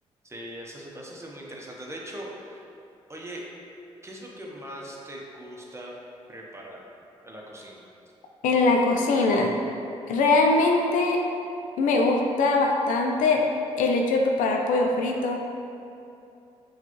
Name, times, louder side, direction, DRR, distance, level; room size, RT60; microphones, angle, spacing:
voice 1, 0.2-2.7 3.1-3.4 4.0-5.9 6.3-6.8 7.2-7.9, right 1 dB, 20° right, -2 dB, 0.8 m, -40 dB
voice 2, 8.4-9.5 10.1-11.2 11.8-13.4 13.8-15.4, left 3 dB, 70° left, 1 dB, 0.4 m, -22 dB
5.8 x 2.4 x 3.0 m, 2.7 s
hypercardioid pair, 50°, 13 cm